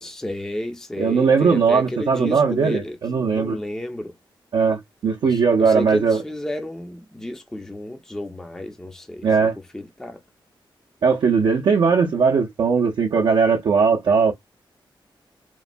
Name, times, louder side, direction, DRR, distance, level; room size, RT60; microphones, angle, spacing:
voice 1, 0.0-3.0 3.3-4.1 5.2-9.5 9.7-10.2, left 1 dB, 5° left, 0.4 m, -32 dB
voice 2, 1.0-3.6 4.5-6.2 9.2-9.5 11.0-14.3, right 5 dB, 65° right, 0.5 m, -19 dB
3.0 x 2.1 x 2.5 m
wide cardioid pair, 145°, 9 cm